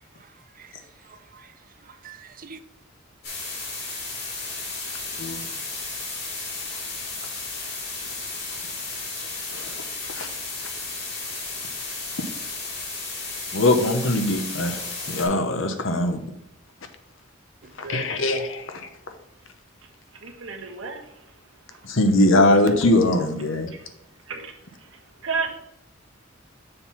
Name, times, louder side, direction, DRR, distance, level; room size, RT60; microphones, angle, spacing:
voice 1, 0.0-2.6 17.6-18.1, right 4 dB, 45° right, 0.6 m, -44 dB
sound 1, 3.2-15.3, left 3 dB, 55° left, 2.6 m, -33 dB
voice 2, 13.5-16.2 17.9-18.9 21.8-23.7, left 1 dB, 70° left, 0.9 m, -21 dB
voice 3, 20.2-21.2 21.7-21.8 23.7-23.9 24.3-24.5 24.8-25.5, right 4 dB, 70° right, 1.4 m, -32 dB
6.8 x 4.0 x 5.6 m
head